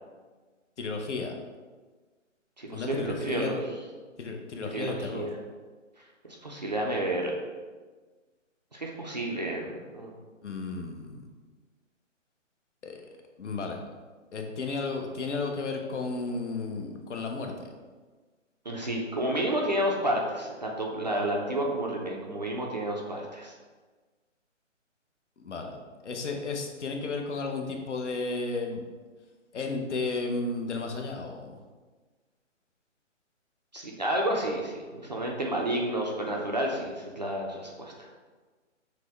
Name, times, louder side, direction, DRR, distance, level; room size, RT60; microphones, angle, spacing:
voice 1, 0.8-1.4 2.7-3.6 4.2-5.3 10.4-11.2 12.8-13.0 13.4-13.8 14.3-17.7 25.4-25.8 26.0-28.8 29.5-31.6, left 3 dB, 65° left, 3 dB, 0.8 m, -33 dB
voice 2, 2.6-3.6 4.7-5.3 6.3-7.3 8.7-10.1 18.6-23.5 33.7-38.1, right 1 dB, 35° right, -1 dB, 0.4 m, -30 dB
5.9 x 2.1 x 3.3 m, 1.4 s
hypercardioid pair, 165°, 38 cm